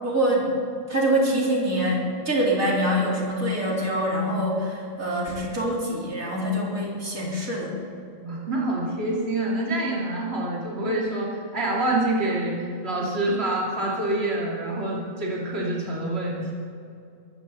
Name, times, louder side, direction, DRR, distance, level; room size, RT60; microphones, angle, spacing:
voice 1, 0.0-0.5 0.9-7.8, equal, 90° right, -4 dB, 4.3 m, -25 dB
voice 2, 8.2-12.6 12.8-16.5, right 1 dB, 50° right, -5 dB, 3.1 m, -26 dB
24.5 x 14.5 x 4.1 m, 2.6 s
omnidirectional pair, 1.4 m